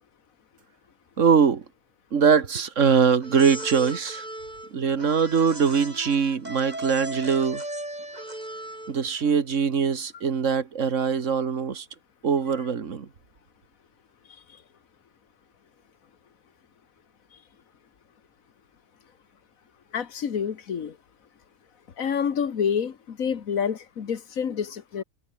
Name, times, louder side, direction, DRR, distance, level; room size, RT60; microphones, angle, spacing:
voice 1, 1.2-1.7 2.1-4.3 4.7-7.6 8.9-11.9 12.2-13.1, right 6 dB, 65° right, 1.9 m, -22 dB
sound 1, 3.2-9.1, right 1 dB, 30° right, 5.2 m, -37 dB
voice 2, 19.9-21.0 22.0-25.0, left 7 dB, 80° left, 1.8 m, -28 dB
omnidirectional pair, 1.4 m